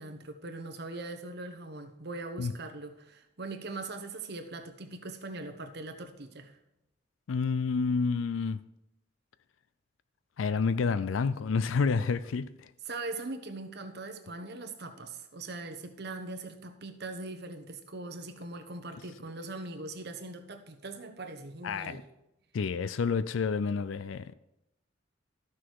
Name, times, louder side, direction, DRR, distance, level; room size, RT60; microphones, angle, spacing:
voice 1, 0.0-6.6 12.9-22.0, right 2 dB, 60° right, 1.1 m, -41 dB
voice 2, 7.3-8.6 10.4-12.7 21.6-22.0 22.5-24.3, left 5 dB, 90° left, 0.4 m, -29 dB
13.5 x 6.2 x 4.7 m
head